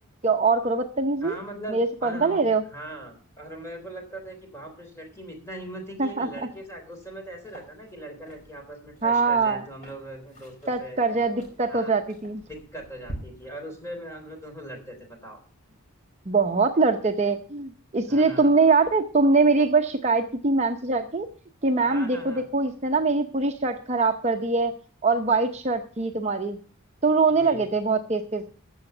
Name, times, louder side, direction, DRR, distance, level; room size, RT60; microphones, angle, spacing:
voice 1, 0.2-1.3 1.7-2.6 6.0-6.3 9.0-9.6 10.7-12.4 16.3-21.3 21.6-24.7 25.0-26.6 27.0-28.4, right 4 dB, 30° right, 4 dB, 0.7 m, -23 dB
voice 2, 1.2-11.0 11.7-11.9 12.5-15.4 18.0-18.5 21.8-22.4 27.4-27.7, right 1 dB, 10° left, 3 dB, 3.5 m, -40 dB
sound 1, 7.0-7.1 7.4-13.2, right 1 dB, 30° left, 5.0 m, -45 dB
14.5 x 7.0 x 6.7 m, 0.42 s
head